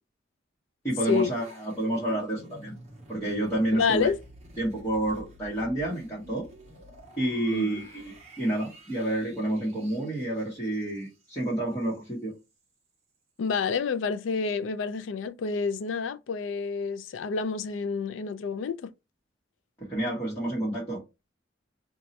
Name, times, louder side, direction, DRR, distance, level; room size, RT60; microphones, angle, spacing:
voice 1, 0.8-2.7 3.1-4.1 4.6-6.5 7.2-12.3 19.8-21.0, right 1 dB, 15° left, 1.0 m, -29 dB
sound 1, 0.9-12.1 12.4-12.6, right 1 dB, 35° right, 1.0 m, -50 dB
voice 2, 3.7-4.2 7.5-7.8 13.4-18.9, left 5 dB, 70° left, 0.4 m, -28 dB
2.7 x 2.3 x 4.0 m
head